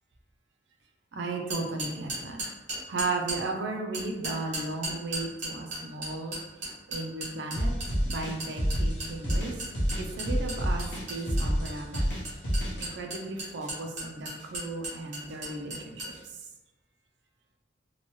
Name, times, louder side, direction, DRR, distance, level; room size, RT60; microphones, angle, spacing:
voice 1, 1.1-2.4 2.9-6.4 6.9-7.7 8.1-9.5 10.1-10.8 11.1-12.0 12.8-16.1, right 3 dB, 65° right, 2 dB, 0.5 m, -35 dB
sound 1, 1.5-3.4 3.9-16.2, right 2 dB, 40° right, 1.2 m, -36 dB
sound 2, 7.6-12.9, equal, 75° left, 0.8 m, -28 dB
2.9 x 2.2 x 2.9 m, 1.1 s
head